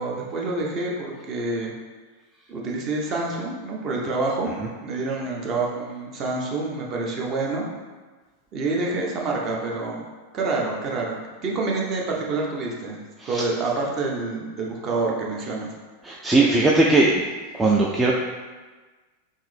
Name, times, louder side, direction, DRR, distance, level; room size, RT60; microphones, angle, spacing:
voice 1, 0.0-1.7 2.5-4.5 4.8-7.6 8.5-10.1 10.3-13.0 13.3-15.7, right 3 dB, 35° right, -2 dB, 0.7 m, -27 dB
voice 2, 16.0-17.2 17.6-18.1, right 2 dB, 10° right, -3 dB, 0.3 m, -19 dB
3.6 x 2.6 x 3.3 m, 1.3 s
figure-of-eight pair, 90°, 0 cm